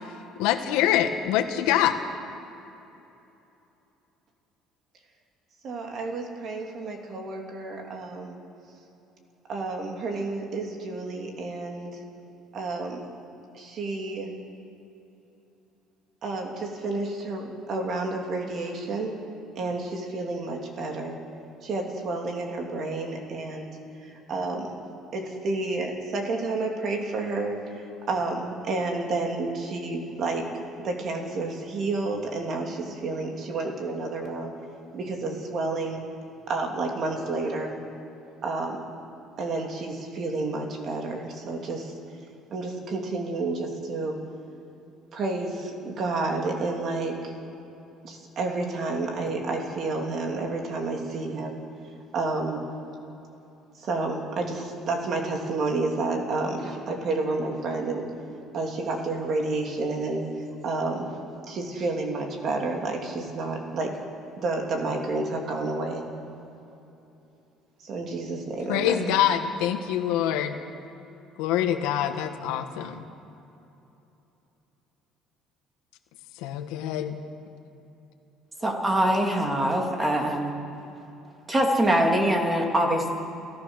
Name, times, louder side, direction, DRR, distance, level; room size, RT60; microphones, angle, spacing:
voice 1, 0.4-1.9 68.7-70.6 71.4-73.0 76.4-77.1, left 11 dB, 85° left, 7 dB, 1.5 m, -25 dB
voice 2, 5.6-8.4 9.5-12.0 12.5-13.1 13.5-14.3 16.2-19.1 19.5-21.2 21.6-24.8 25.1-30.5 30.8-34.5 34.9-36.0 36.5-37.7 38.4-38.9 39.4-41.9 42.5-44.2 45.1-47.3 48.0-51.6 52.1-52.6 53.8-58.1 58.5-60.3 60.6-61.1 61.5-63.9 64.4-66.0 67.8-69.2, right 3 dB, 40° right, 2 dB, 3.0 m, -30 dB
voice 3, 78.6-80.6 81.5-83.1, right 1 dB, 15° right, 2 dB, 2.7 m, -23 dB
29.0 x 14.0 x 6.4 m, 2.9 s
cardioid pair, 150°, 0 cm